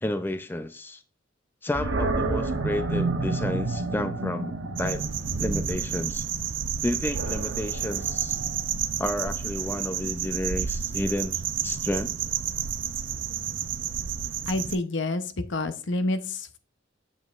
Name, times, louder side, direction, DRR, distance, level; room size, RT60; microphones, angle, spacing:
voice 1, 0.0-1.0 1.6-5.0 5.4-6.3 6.8-8.4 9.0-12.1, left 1 dB, 10° left, 0.4 m, -31 dB
Animal, 1.7-8.9, right 3 dB, 85° right, 0.9 m, -30 dB
sound 1, 4.8-14.8, right 8 dB, 70° right, 0.5 m, -31 dB
voice 2, 14.5-16.6, left 2 dB, 70° left, 0.7 m, -28 dB
8.1 x 7.1 x 2.4 m
head